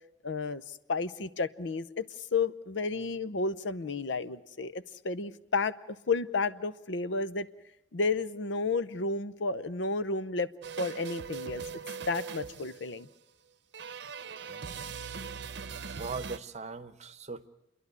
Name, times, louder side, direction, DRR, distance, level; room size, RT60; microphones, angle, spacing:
voice 1, 0.2-2.0 2.3-5.7 6.1-7.5 7.9-10.5 10.8-11.6 12.1-13.1, left 4 dB, 90° left, 14 dB, 0.7 m, -32 dB
sound 1, 10.6-13.0 13.7-16.4, right 5 dB, 65° right, 0.8 m, -40 dB
voice 2, 16.0-17.5, right 4 dB, 40° right, 11 dB, 0.9 m, -40 dB
29.5 x 11.0 x 9.5 m, 0.98 s
head